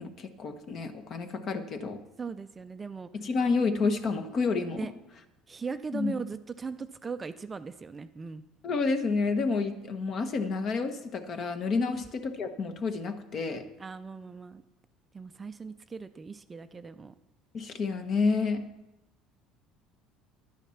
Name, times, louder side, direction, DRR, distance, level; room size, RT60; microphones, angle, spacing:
voice 1, 0.0-2.0 3.1-4.9 5.9-6.1 8.6-13.6 17.5-18.6, left 4 dB, 45° left, 8 dB, 1.1 m, -29 dB
voice 2, 2.2-3.1 4.7-4.9 5.5-8.4 11.9-12.1 13.8-14.6 15.1-17.1, right 5 dB, 20° right, 10 dB, 0.4 m, -39 dB
11.0 x 9.1 x 5.8 m, 0.92 s
cardioid pair, 125°, 0 cm